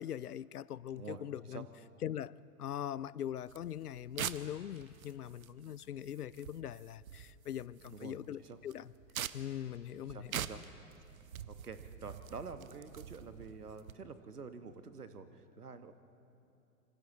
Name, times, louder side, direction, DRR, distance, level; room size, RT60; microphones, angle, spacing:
voice 1, 0.0-1.7 2.0-2.3 2.6-8.9 9.3-10.5, left 10 dB, 80° left, 0.6 m, -41 dB
voice 2, 0.9-1.6 7.9-8.6 10.0-10.6 11.5-15.9, right 4 dB, 80° right, 1.3 m, -48 dB
sound 1, 3.5-13.9, right 9 dB, 65° right, 0.8 m, -46 dB
26.5 x 25.0 x 4.1 m
figure-of-eight pair, 105°, 45 cm